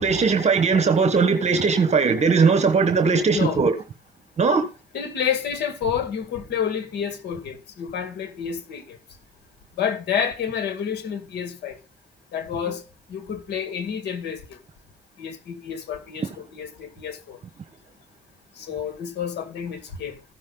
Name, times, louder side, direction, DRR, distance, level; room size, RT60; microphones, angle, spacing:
voice 1, 0.0-3.7 4.4-4.6, right 5 dB, 40° right, 1.2 m, -19 dB
voice 2, 4.9-9.0 9.8-11.8 12.3-12.8 13.1-14.6 15.2-17.4 18.6-20.2, left 7 dB, 80° left, 1.9 m, -29 dB
14.5 x 6.3 x 3.9 m
cardioid pair, 90°, 17 cm